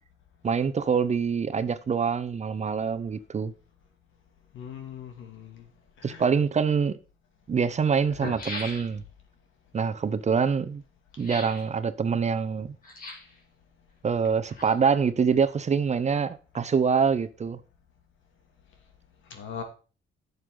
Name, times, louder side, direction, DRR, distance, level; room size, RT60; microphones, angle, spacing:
voice 1, 0.4-3.5 6.0-7.0 7.5-9.0 9.7-10.8 11.2-12.7 14.0-17.6, right 6 dB, 35° right, 0.8 m, -25 dB
voice 2, 4.5-5.6 6.0-6.3 19.3-19.6, left 7 dB, 75° left, 2.6 m, -40 dB
sound 1, 8.0-9.2 11.2-11.7 12.8-13.4 14.2-15.0 15.3-15.4, left 2 dB, 45° left, 3.5 m, -39 dB
11.0 x 6.8 x 3.9 m
cardioid pair, 90°, 20 cm